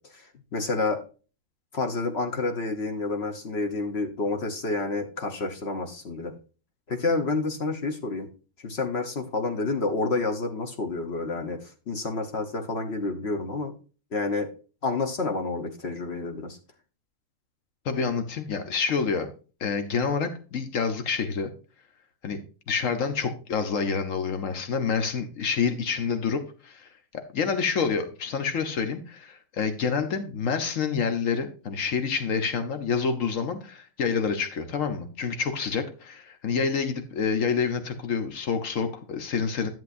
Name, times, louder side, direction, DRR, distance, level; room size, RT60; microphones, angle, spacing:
voice 1, 0.1-1.0 1.7-6.3 6.9-8.3 8.6-13.7 14.1-14.5 14.8-16.6, left 3 dB, 55° left, 5 dB, 1.2 m, -29 dB
voice 2, 17.8-19.3 19.6-21.5 22.2-22.4 22.7-39.7, left 5 dB, 80° left, 8 dB, 1.4 m, -28 dB
11.0 x 7.5 x 2.6 m, 0.35 s
omnidirectional pair, 1.3 m